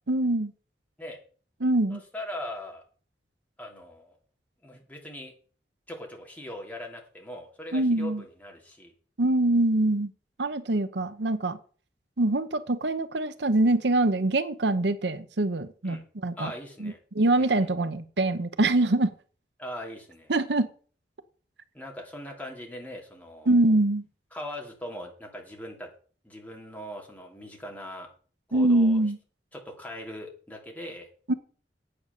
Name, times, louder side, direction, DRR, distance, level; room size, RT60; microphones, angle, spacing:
voice 1, 0.1-0.5 1.6-2.0 7.7-8.2 9.2-10.1 10.4-11.6 12.2-16.5 16.8-19.1 20.3-20.7 23.5-24.0 28.5-29.2 31.3-31.4, right 2 dB, 80° right, 0.9 m, -24 dB
voice 2, 1.9-2.8 3.6-4.2 4.6-5.3 5.9-8.9 15.8-16.0 16.4-17.0 17.4-17.7 19.6-20.3 21.7-23.7 24.3-25.9 26.2-28.1 28.5-29.0 29.5-31.1, left 1 dB, 10° left, 2.7 m, -40 dB
8.8 x 8.5 x 6.7 m
head